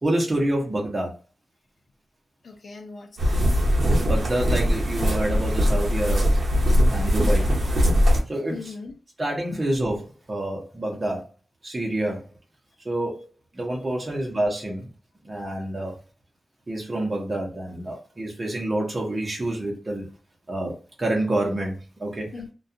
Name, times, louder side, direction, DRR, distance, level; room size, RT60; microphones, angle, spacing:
voice 1, 0.0-1.1 3.9-6.3 6.9-7.5 8.3-8.6 9.2-10.0 10.3-11.3 11.6-12.2 12.8-13.3 13.5-14.9 15.2-15.9 16.7-20.1 20.5-22.3, right 1 dB, 25° right, -2 dB, 0.8 m, -27 dB
voice 2, 2.4-3.4 8.5-9.0 9.5-9.6 13.9-14.0 15.3-15.5 22.3-22.5, left 4 dB, 60° left, 2 dB, 0.5 m, -40 dB
sound 1, 3.2-8.2, equal, 60° right, 0.7 m, -21 dB
2.3 x 2.3 x 2.6 m, 0.34 s
wide cardioid pair, 115°, 0 cm